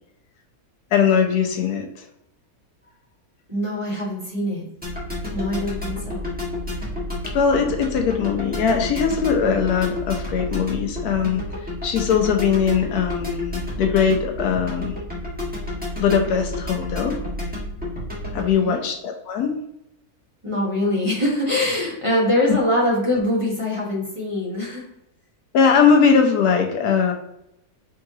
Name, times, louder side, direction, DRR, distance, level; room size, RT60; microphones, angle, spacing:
voice 1, 0.9-2.0 7.3-11.4 11.8-15.0 16.0-17.2 18.3-19.5 22.5-22.6 25.5-27.1, left 6 dB, 80° left, 4 dB, 1.3 m, -20 dB
voice 2, 3.5-4.7 5.3-6.2 18.5-18.8 20.4-24.8, left 1 dB, 20° right, -5 dB, 1.2 m, -23 dB
sound 1, 4.8-18.5, left 1 dB, 5° right, 1.5 m, -30 dB
4.7 x 3.7 x 2.7 m, 0.80 s
omnidirectional pair, 1.6 m